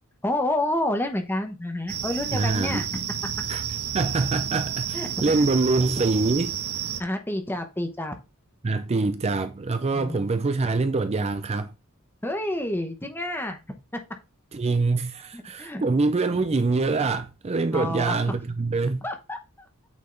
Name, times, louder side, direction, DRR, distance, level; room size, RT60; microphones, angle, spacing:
voice 1, 0.2-2.8 4.9-5.5 7.0-8.1 9.9-10.2 12.2-13.6 15.3-15.8 16.3-16.5 17.7-18.2 19.0-19.4, left 1 dB, 10° left, 0.9 m, -29 dB
sound 1, 1.9-7.0, right 9 dB, 75° right, 0.7 m, -31 dB
voice 2, 2.3-2.8 3.5-3.6 3.9-6.6 8.6-11.7 14.5-19.0, right 3 dB, 30° right, 0.4 m, -25 dB
8.5 x 3.6 x 3.9 m
head